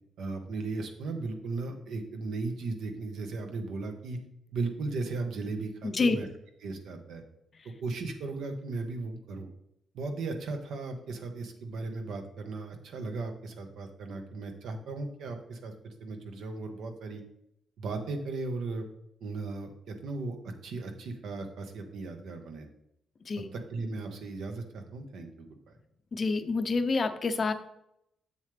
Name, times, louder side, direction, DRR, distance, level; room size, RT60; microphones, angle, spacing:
voice 1, 0.2-4.2 4.5-6.3 6.6-7.2 7.8-9.5 9.9-17.2 17.8-18.8 19.2-20.4 20.6-22.7 23.4-25.5, right 3 dB, 75° right, 5 dB, 1.3 m, -36 dB
voice 2, 5.8-6.2 23.3-23.5 26.1-27.5, left 3 dB, 35° left, 10 dB, 0.5 m, -27 dB
7.5 x 7.2 x 3.4 m, 0.77 s
cardioid pair, 150°, 0 cm